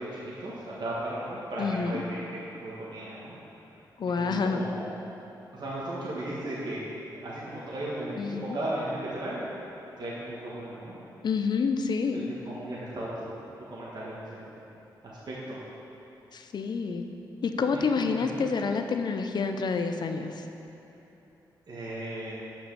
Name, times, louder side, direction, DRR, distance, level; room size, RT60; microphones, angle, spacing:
voice 1, 0.0-2.0 2.5-3.3 4.2-4.9 5.5-6.8 7.1-9.4 10.0-10.9 12.1-13.4 13.7-14.5 15.0-15.6 17.6-18.5 21.7-22.3, right 1 dB, 55° right, -8 dB, 1.5 m, -36 dB
voice 2, 1.6-2.0 4.0-4.7 8.1-8.6 11.2-12.3 16.3-17.0 17.4-20.4, left 5 dB, 60° left, 6 dB, 0.6 m, -28 dB
5.9 x 5.4 x 6.9 m, 2.9 s
cardioid pair, 60°, 8 cm